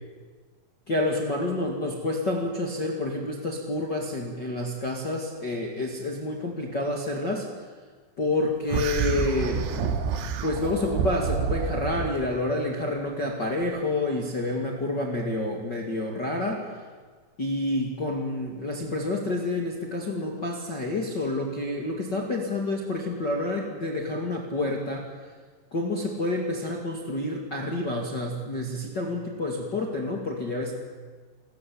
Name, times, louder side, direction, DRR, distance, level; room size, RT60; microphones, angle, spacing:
voice 1, 0.9-7.5 8.2-9.6 10.4-16.7 17.4-25.1 25.7-30.7, left 2 dB, 40° left, 0 dB, 1.5 m, -28 dB
sound 1, 8.7-12.1, right 6 dB, 85° right, 4.1 m, -28 dB
28.5 x 14.5 x 8.7 m, 1.5 s
omnidirectional pair, 5.6 m